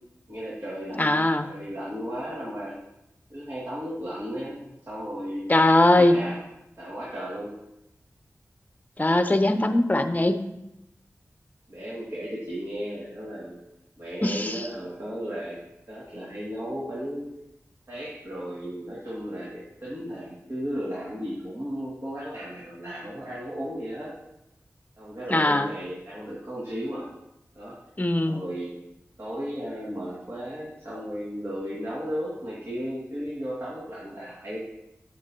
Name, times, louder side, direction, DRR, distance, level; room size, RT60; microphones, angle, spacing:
voice 1, 0.3-2.7 3.3-5.4 5.9-6.4 6.8-7.6 11.7-13.6 14.0-15.6 15.9-17.3 17.9-24.1 25.0-27.1 27.5-27.8 28.3-28.7 29.2-34.6, equal, 50° right, -7 dB, 2.3 m, -35 dB
voice 2, 1.0-1.5 5.5-6.2 9.0-10.5 14.2-14.6 25.3-25.7 28.0-28.4, left 1 dB, 30° left, 8 dB, 0.7 m, -21 dB
8.4 x 7.9 x 2.9 m, 0.89 s
cardioid pair, 45°, 6 cm